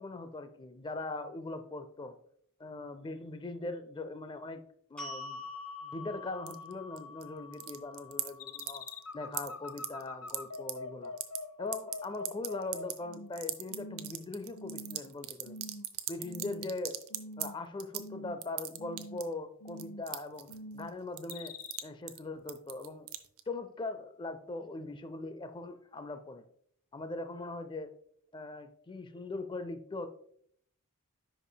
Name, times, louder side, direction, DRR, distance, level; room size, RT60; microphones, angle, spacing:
voice 1, 0.0-2.2 2.6-4.6 4.9-5.4 5.8-8.8 9.1-11.1 11.6-15.6 16.1-17.0 17.4-20.5 20.7-21.5 21.8-23.1 23.5-26.4 26.9-27.9 28.3-30.1, left 2 dB, 20° left, 10 dB, 0.4 m, -40 dB
sound 1, 5.0-11.2, left 3 dB, 5° left, 2.2 m, -47 dB
sound 2, 6.5-7.2 7.5-8.3 8.6-9.0 9.3-10.7 11.0-11.4 11.7-17.5 17.8-18.1 18.4-19.3 19.7-20.9 21.2-21.8 22.1-22.2 22.5-23.4, right 14 dB, 70° right, 0.6 m, -37 dB
sound 3, 8.4-13.4 13.7-14.2 14.5-15.1 15.4-15.9 16.2-16.8 17.1-17.6 17.9-18.4 18.8-19.2 19.6-20.1 20.5-20.9 21.3-21.8, left 2 dB, 80° left, 0.5 m, -44 dB
10.0 x 5.0 x 2.2 m, 0.65 s
head